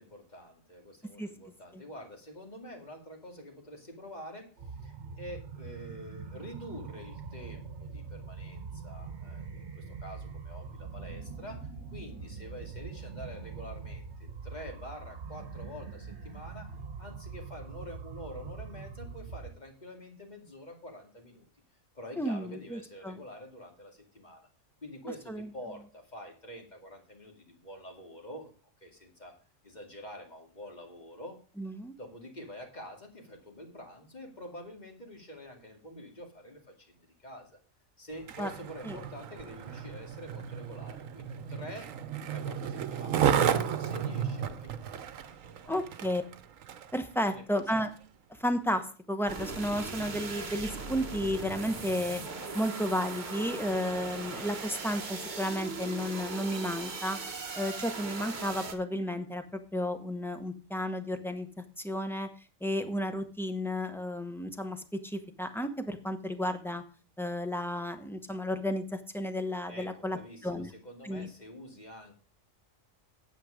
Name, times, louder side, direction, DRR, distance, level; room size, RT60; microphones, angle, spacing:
voice 1, 0.0-16.7 17.0-21.5 21.9-24.5 24.8-28.5 28.8-29.3 29.6-31.4 32.0-37.6 38.0-41.9 42.2-45.7 47.2-47.6 69.7-72.1, equal, 35° left, 2 dB, 2.4 m, -47 dB
sound 1, 4.6-19.5, right 5 dB, 60° right, 1.3 m, -43 dB
voice 2, 22.2-23.2 25.3-25.5 31.6-31.9 38.4-38.5 38.8-39.0 45.7-46.2 46.9-47.9 48.4-52.2 52.5-57.2 57.5-61.5 61.8-62.3 62.6-66.8 67.2-70.7 71.0-71.3, equal, ahead, 7 dB, 0.8 m, -33 dB
Skateboard, 38.1-47.0 47.6-47.7, right 8 dB, 80° right, 1.2 m, -33 dB
sound 2, 49.3-58.7, right 4 dB, 40° right, 1.2 m, -39 dB
9.1 x 8.1 x 5.0 m, 0.37 s
omnidirectional pair, 1.4 m